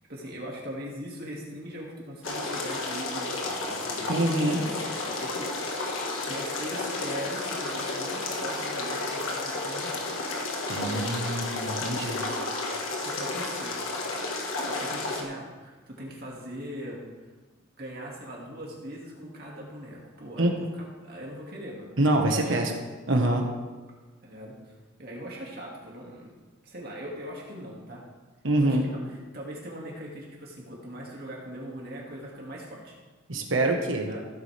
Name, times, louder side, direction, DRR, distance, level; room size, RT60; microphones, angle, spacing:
voice 1, 0.1-10.2 11.5-12.0 13.0-13.8 14.7-17.1 17.8-22.7 24.2-26.3 26.6-28.0 28.5-33.0 33.9-34.3, equal, 50° right, -3 dB, 2.3 m, -41 dB
sound 1, 2.2-15.2, left 2 dB, 90° left, 1.7 m, -32 dB
voice 2, 4.1-4.6 10.7-12.2 20.4-20.5 22.0-22.7 23.1-23.5 28.4-28.9 33.3-34.1, right 1 dB, 75° right, 2 dB, 1.4 m, -25 dB
15.5 x 8.7 x 3.5 m, 1.3 s
head